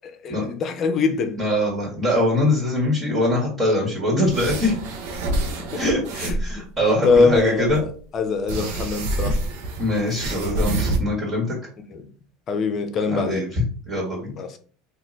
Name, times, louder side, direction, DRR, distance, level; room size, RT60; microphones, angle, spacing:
voice 1, 0.2-1.4 5.7-5.8 6.2-6.4 7.0-7.8 8.1-9.4 11.9-12.0 12.5-13.5 14.4-14.6, left 4 dB, 40° left, 0.7 m, -22 dB
voice 2, 1.4-4.7 5.7-6.0 6.4-7.8 9.8-11.6 13.0-13.6 13.9-14.3, left 1 dB, 25° right, 1.7 m, -22 dB
sound 1, 4.3-6.5 7.0-7.8 8.5-11.0, right 2 dB, 70° right, 0.9 m, -27 dB
3.0 x 2.5 x 3.9 m
hypercardioid pair, 95°, 0 cm